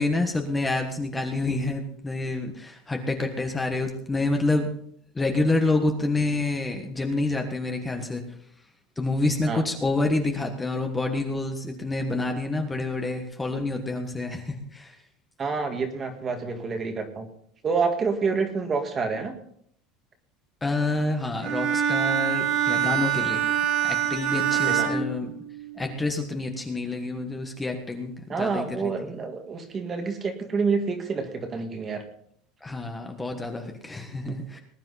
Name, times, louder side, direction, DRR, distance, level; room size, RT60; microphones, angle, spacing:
voice 1, 0.0-4.7 5.1-8.2 9.0-14.9 20.6-23.5 23.8-25.3 25.8-28.9 32.6-34.6, left 2 dB, 10° left, 3 dB, 1.4 m, -28 dB
voice 2, 15.4-17.3 17.6-19.4 24.7-25.0 28.3-32.0, right 4 dB, 25° right, 6 dB, 1.8 m, -28 dB
Bowed string instrument, 21.4-25.9, right 9 dB, 60° right, 2.7 m, -25 dB
20.0 x 10.5 x 4.1 m, 0.65 s
cardioid pair, 160°, 0 cm